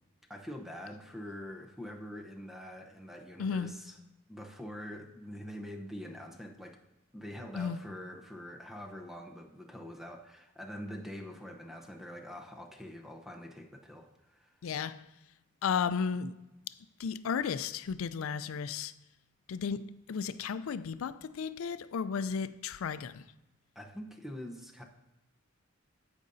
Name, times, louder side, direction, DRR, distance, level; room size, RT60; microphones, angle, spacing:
voice 1, 0.3-3.9 4.3-6.8 7.1-14.5 23.8-24.8, equal, ahead, 0.7 m, -44 dB
voice 2, 3.4-3.7 7.6-7.8 14.6-15.1 15.6-16.4 16.7-18.9 19.5-23.3, left 6 dB, 75° left, 0.4 m, -34 dB
14.0 x 5.1 x 2.6 m
head